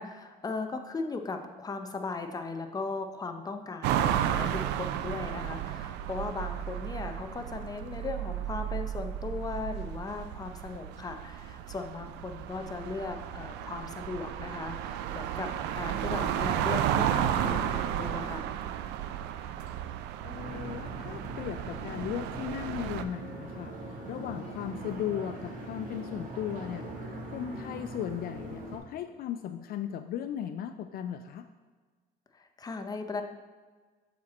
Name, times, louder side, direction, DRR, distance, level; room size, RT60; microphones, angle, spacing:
voice 1, 0.0-15.5 15.8-18.5 32.3-33.2, left 4 dB, 20° left, 6 dB, 0.6 m, -37 dB
sound 1, 3.8-23.0, right 10 dB, 90° right, 0.4 m, -33 dB
voice 2, 19.3-19.8 20.2-23.7 24.1-26.9 27.3-31.5, left 9 dB, 60° left, 9 dB, 0.4 m, -37 dB
sound 2, 20.3-28.8, right 1 dB, 50° right, 1.6 m, -41 dB
7.3 x 4.4 x 4.2 m, 1.4 s
cardioid pair, 110°, 17 cm